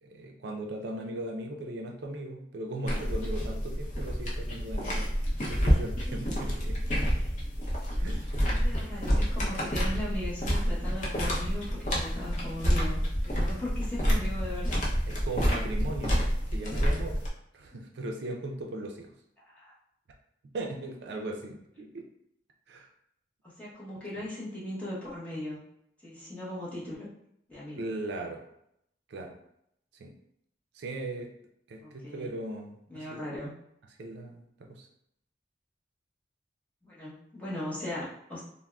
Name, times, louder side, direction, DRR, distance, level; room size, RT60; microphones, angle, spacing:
voice 1, 0.0-5.0 5.4-7.0 8.0-8.2 8.7-8.8 15.1-16.3 16.5-17.2 17.5-19.1 20.5-22.0 22.7-22.9 24.1-24.2 27.8-28.4 29.1-29.3 29.9-30.1 30.7-31.3 31.7-33.2 34.0-34.9, right 1 dB, 70° right, 2 dB, 0.4 m, -38 dB
sound 1, 2.9-17.3, equal, 40° left, 0.6 m, -28 dB
voice 2, 7.0-7.3 8.4-14.9 19.5-19.7 23.4-25.6 26.0-27.1 27.5-27.9 31.8-32.3 32.9-33.5 36.8-38.4, left 1 dB, 10° left, -8 dB, 0.8 m, -38 dB
3.5 x 2.0 x 2.2 m, 0.75 s
head